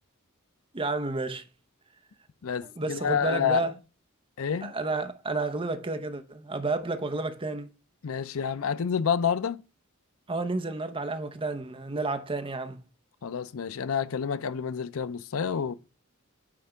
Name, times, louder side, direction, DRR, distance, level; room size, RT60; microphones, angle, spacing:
voice 1, 0.7-1.4 2.6-3.7 4.6-7.7 10.3-12.8, right 3 dB, 25° right, 0.8 m, -31 dB
voice 2, 2.4-3.6 4.4-4.7 8.0-9.6 13.2-15.7, left 7 dB, 70° left, 0.5 m, -28 dB
9.7 x 3.5 x 4.9 m
head